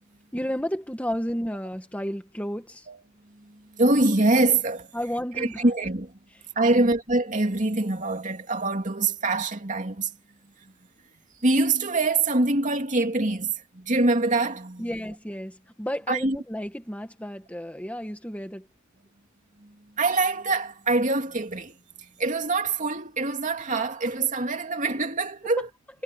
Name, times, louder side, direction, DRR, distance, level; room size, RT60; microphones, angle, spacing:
voice 1, 0.3-2.9 4.9-5.6 6.7-6.8 14.8-18.7, equal, 5° left, 1.8 m, -32 dB
voice 2, 2.9-4.9 5.3-6.2 6.5-10.1 10.6-10.7 11.4-15.1 16.1-16.4 19.6-25.7, right 2 dB, 40° right, 2.8 m, -25 dB
head